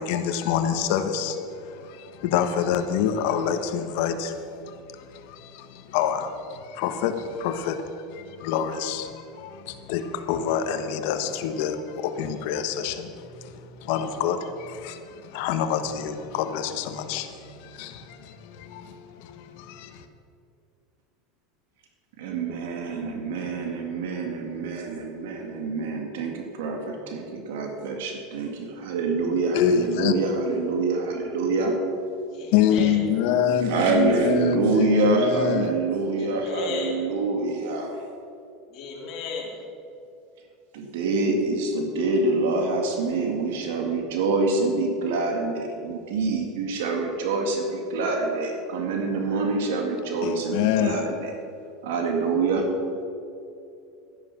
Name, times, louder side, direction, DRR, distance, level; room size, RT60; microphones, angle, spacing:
voice 1, 0.0-20.0 29.5-30.1 32.5-35.7 50.2-51.0, left 8 dB, 70° left, 1.2 m, -27 dB
voice 2, 22.2-31.7 33.6-38.0 40.7-51.3 51.8-52.7, right 3 dB, 80° right, 1.9 m, -26 dB
voice 3, 32.3-33.0 36.0-37.0 38.7-39.6, left 5 dB, 50° left, 3.3 m, -36 dB
12.5 x 10.5 x 5.9 m
supercardioid pair, 125°, 0 cm